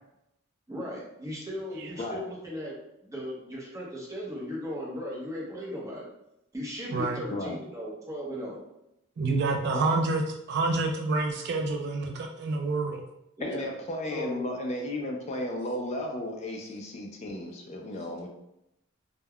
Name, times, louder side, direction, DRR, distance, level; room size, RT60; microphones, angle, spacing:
voice 1, 0.7-2.7 3.0-6.0 6.5-8.6 13.4-13.7 14.1-14.4, equal, 15° right, -4 dB, 0.7 m, -37 dB
voice 2, 6.9-7.2 9.2-13.0, right 3 dB, 55° right, 3 dB, 0.3 m, -28 dB
voice 3, 13.4-18.3, left 1 dB, 35° left, 1 dB, 0.3 m, -34 dB
2.2 x 2.1 x 3.4 m, 0.84 s
head